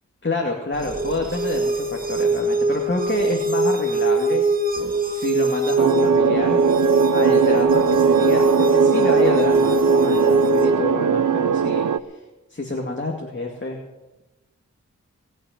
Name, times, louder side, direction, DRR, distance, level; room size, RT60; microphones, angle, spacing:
voice 1, 0.2-4.4 5.0-6.6 7.1-12.2 12.5-13.8, left 2 dB, 40° left, 0 dB, 2.4 m, -28 dB
sound 1, 0.8-10.8, right 1 dB, 30° right, 1.8 m, -21 dB
sound 2, 5.8-12.0, right 8 dB, 85° right, 0.6 m, -20 dB
20.0 x 6.7 x 9.1 m, 1.1 s
cardioid pair, 45°, 30 cm